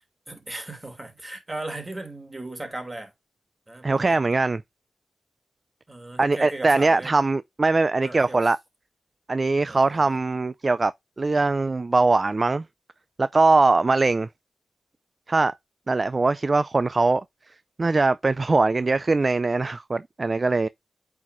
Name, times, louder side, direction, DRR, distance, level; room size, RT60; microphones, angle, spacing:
voice 1, 0.3-3.1 3.7-4.2 5.9-7.2 8.0-8.4 9.6-10.2, right 2 dB, 25° right, 2.7 m, -37 dB
voice 2, 3.8-4.6 6.2-8.6 9.3-10.9 11.2-12.6 13.2-14.3 15.3-15.5 15.9-17.2 17.8-20.7, right 3 dB, 40° right, 0.4 m, -21 dB
8.6 x 4.6 x 2.6 m
cardioid pair, 55°, 0 cm